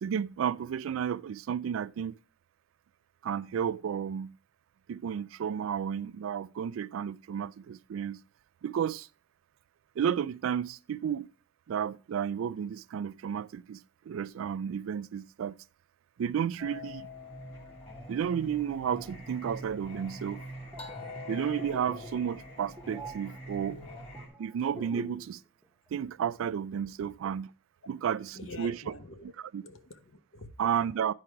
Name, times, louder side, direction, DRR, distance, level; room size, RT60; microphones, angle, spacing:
voice 1, 0.0-2.1 3.2-4.3 4.9-8.2 8.6-9.1 10.0-11.3 11.7-13.8 14.1-15.6 16.2-17.1 18.1-20.4 21.3-23.8 24.4-25.4 25.9-27.5 27.9-28.8 29.2-29.6 30.6-31.1, right 8 dB, 75° right, 0.3 m, -32 dB
Singing, 16.6-24.3, left 1 dB, 30° left, 1.9 m, -44 dB
sound 1, 20.5-25.4 25.6-25.9, right 1 dB, 10° right, 0.8 m, -46 dB
voice 2, 28.3-29.2 29.6-30.5, left 2 dB, 65° left, 0.8 m, -46 dB
9.9 x 4.9 x 4.5 m
head